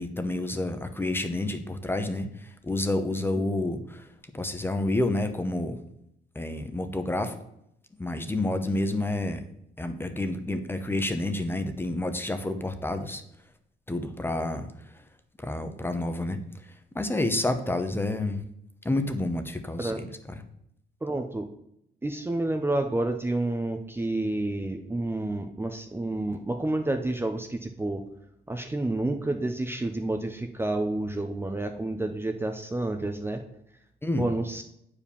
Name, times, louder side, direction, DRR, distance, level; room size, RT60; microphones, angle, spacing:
voice 1, 0.0-2.3 2.6-4.0 4.3-5.8 6.3-7.3 8.0-9.4 9.8-13.2 13.9-14.7 15.4-16.4 16.9-18.4 18.8-19.9 34.0-34.2, left 2 dB, 10° left, 8 dB, 1.0 m, -29 dB
voice 2, 21.0-21.5 22.0-28.0 28.5-33.4 34.2-34.6, right 2 dB, 10° right, 5 dB, 0.7 m, -29 dB
8.8 x 5.0 x 7.0 m, 0.76 s
cardioid pair, 105°, 18 cm